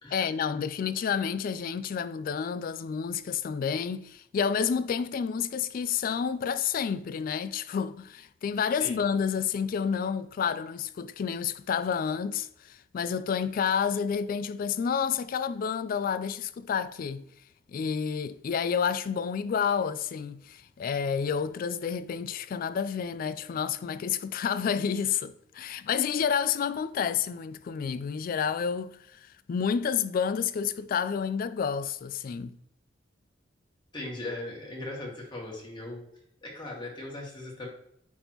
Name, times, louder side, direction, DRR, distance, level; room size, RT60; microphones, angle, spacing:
voice 1, 0.1-17.3 17.7-29.2 29.5-32.6, left 7 dB, 50° left, 0.3 m, -29 dB
voice 2, 33.9-36.0 36.4-37.7, left 2 dB, 25° left, 1.8 m, -38 dB
9.2 x 3.5 x 2.9 m
head